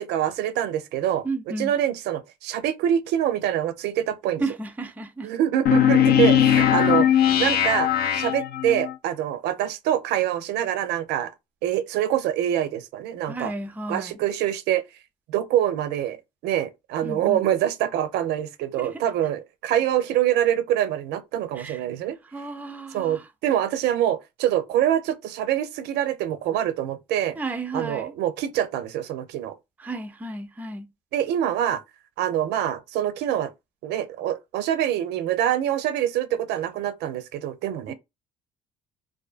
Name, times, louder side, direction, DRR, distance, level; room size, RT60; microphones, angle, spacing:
voice 1, 0.0-4.4 5.2-7.1 7.4-11.3 11.6-13.5 13.9-14.8 15.3-16.2 16.4-22.2 22.9-27.4 27.7-29.6 31.1-31.8 32.2-33.5 33.8-37.9, right 11 dB, 85° right, 0.4 m, -25 dB
voice 2, 1.2-1.7 4.4-5.3 6.9-7.0 13.3-14.2 17.0-17.4 18.8-18.9 21.6-21.8 22.3-23.2 27.4-28.1 29.8-30.9 37.9-38.0, right 2 dB, 10° right, 0.4 m, -33 dB
sound 1, 5.7-8.9, left 10 dB, 65° left, 0.5 m, -19 dB
2.5 x 2.3 x 2.4 m
cardioid pair, 110°, 17 cm